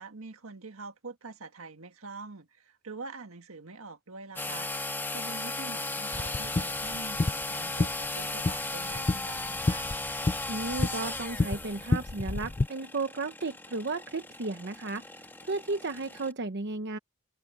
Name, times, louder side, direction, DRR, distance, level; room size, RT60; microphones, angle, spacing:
voice 1, 0.0-9.9, right 3 dB, 75° right, 1.7 m, -45 dB
sound 1, 4.4-16.3, left 2 dB, 10° left, 1.4 m, -36 dB
sound 2, 6.1-12.7, left 2 dB, 25° left, 0.5 m, -31 dB
voice 2, 10.5-17.0, right 3 dB, 55° right, 0.9 m, -34 dB
head